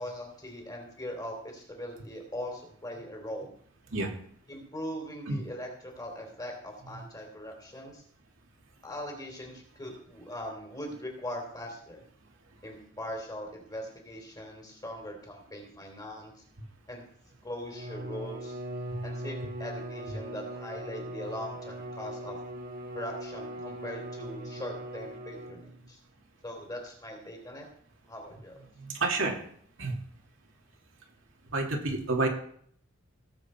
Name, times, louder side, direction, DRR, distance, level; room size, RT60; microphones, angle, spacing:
voice 1, 0.0-3.5 4.5-8.0 8.8-12.0 12.6-16.3 16.9-17.0 17.4-18.6 19.0-22.4 22.9-26.0 26.4-27.7 28.1-28.6, equal, 20° left, 2 dB, 3.4 m, -40 dB
Bowed string instrument, 17.6-25.9, right 1 dB, 45° right, 1.4 m, -40 dB
voice 2, 28.7-29.4 29.8-30.0 31.5-32.3, right 3 dB, 65° right, 1 dB, 2.5 m, -29 dB
17.5 x 8.1 x 4.5 m, 0.62 s
head